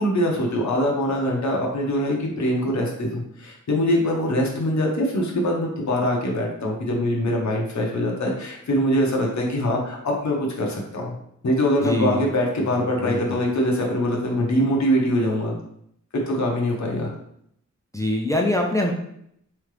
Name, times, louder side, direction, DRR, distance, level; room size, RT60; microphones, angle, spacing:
voice 1, 0.0-11.1 11.4-15.5 16.1-17.1, equal, 70° left, -1 dB, 0.9 m, -23 dB
voice 2, 11.8-12.3 13.0-13.4 17.9-18.9, left 1 dB, 10° left, 1 dB, 0.4 m, -24 dB
3.7 x 3.2 x 3.3 m, 0.72 s
wide cardioid pair, 135°, 30 cm